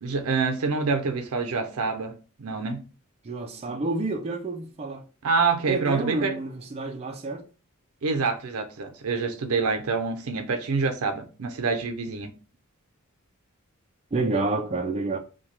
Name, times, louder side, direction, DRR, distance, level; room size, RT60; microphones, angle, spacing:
voice 1, 0.0-2.9 5.2-6.3 8.0-12.3, right 4 dB, 75° right, 0.5 m, -26 dB
voice 2, 3.2-5.0 5.7-7.4 14.1-15.2, right 3 dB, 30° right, 0.3 m, -29 dB
2.7 x 2.2 x 3.1 m
head